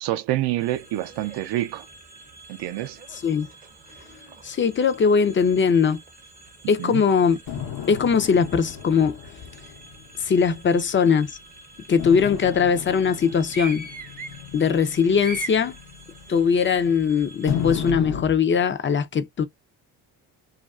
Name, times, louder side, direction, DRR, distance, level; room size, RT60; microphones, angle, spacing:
voice 1, 0.0-1.9 2.5-3.0 6.8-7.0, right 15 dB, 65° right, 0.5 m, -27 dB
sound 1, 0.6-17.9, right 2 dB, 20° right, 0.6 m, -43 dB
voice 2, 3.1-3.5 4.4-6.0 6.7-7.4 7.9-9.2 10.2-11.4 11.9-13.9 14.5-15.7 16.3-19.4, left 6 dB, 30° left, 0.4 m, -20 dB
sound 2, 7.5-11.1 12.0-17.0 17.5-18.2, left 9 dB, 80° left, 0.9 m, -34 dB
2.5 x 2.2 x 2.3 m
cardioid pair, 80°, 44 cm